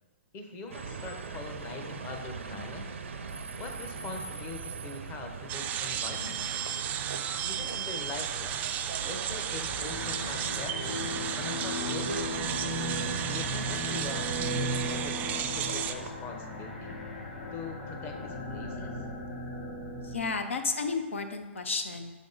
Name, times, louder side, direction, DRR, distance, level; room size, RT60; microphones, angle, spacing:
voice 1, 0.3-3.0 3.6-6.5 7.4-8.6 9.0-12.3 13.2-17.0 17.5-19.0, left 4 dB, 30° left, 3 dB, 0.9 m, -43 dB
sound 1, 0.7-16.1, right 5 dB, 85° right, 0.5 m, -40 dB
sound 2, 5.5-15.9, right 9 dB, 25° right, 0.3 m, -34 dB
sound 3, 9.6-20.3, left 1 dB, 60° left, 1.9 m, -36 dB
voice 2, 20.0-22.1, left 4 dB, 85° left, 6 dB, 0.7 m, -32 dB
7.1 x 3.6 x 3.9 m, 1.2 s
hypercardioid pair, 125°, 7 cm